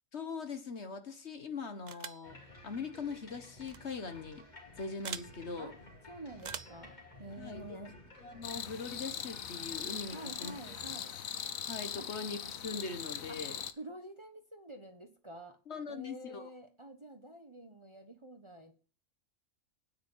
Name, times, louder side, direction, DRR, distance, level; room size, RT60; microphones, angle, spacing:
voice 1, 0.1-4.5 4.8-5.7 7.4-7.8 8.2-10.5 11.7-13.6 15.7-16.5, left 4 dB, 55° left, 1.6 m, -41 dB
sound 1, 1.9-2.3 3.6-3.8 5.0-5.3 6.4-6.8, right 7 dB, 50° right, 0.5 m, -42 dB
sound 2, 2.2-11.0, left 1 dB, 35° left, 3.0 m, -54 dB
voice 2, 6.1-8.0 10.1-11.1 12.0-12.1 13.3-13.4 13.8-15.6 15.9-18.7, right 1 dB, 25° right, 1.2 m, -48 dB
sound 3, 8.4-13.7, left 8 dB, 85° left, 1.3 m, -41 dB
9.5 x 8.3 x 7.3 m
omnidirectional pair, 1.4 m